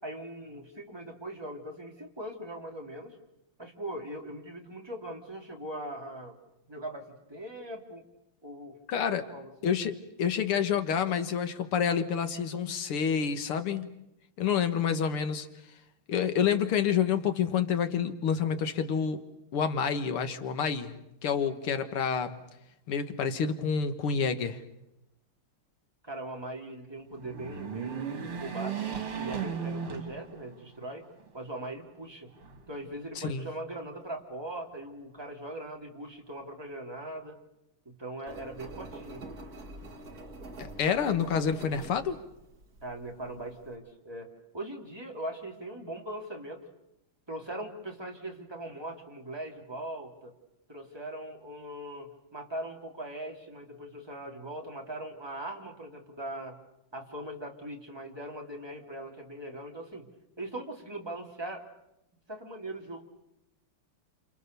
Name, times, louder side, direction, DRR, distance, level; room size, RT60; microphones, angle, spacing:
voice 1, 0.0-3.2 3.6-6.4 6.7-8.0 8.4-8.8 9.2-9.7 26.0-28.8 29.2-31.0 31.3-32.3 32.7-37.4 37.8-39.3 42.8-44.3 44.5-46.7 47.3-50.3 50.7-56.6 56.9-60.0 60.4-61.6 62.3-63.0, right 1 dB, 10° right, 1 dB, 3.1 m, -40 dB
voice 2, 8.9-9.3 9.6-13.9 14.4-15.5 16.1-19.2 19.5-22.4 22.9-24.6 33.2-33.5 40.6-42.2, left 7 dB, 85° left, 9 dB, 2.3 m, -28 dB
sound 1, 27.1-30.7 31.2-31.3 32.4-33.2, right 7 dB, 85° right, 3.2 m, -36 dB
Engine, 38.3-43.7, right 2 dB, 45° right, 2.6 m, -46 dB
29.0 x 27.5 x 6.8 m, 0.86 s
omnidirectional pair, 2.3 m